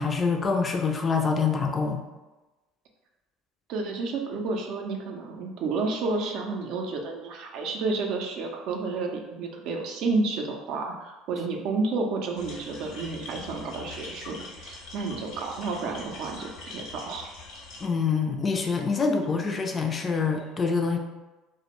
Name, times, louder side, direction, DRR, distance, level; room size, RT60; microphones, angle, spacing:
voice 1, 0.0-2.0 17.8-21.0, left 5 dB, 30° left, 4 dB, 0.3 m, -25 dB
voice 2, 3.7-17.3, right 3 dB, 65° right, 2 dB, 0.4 m, -31 dB
sound 1, 12.3-17.9, left 3 dB, 70° left, 0.7 m, -43 dB
2.1 x 2.1 x 2.9 m, 1.1 s
supercardioid pair, 90°, 0 cm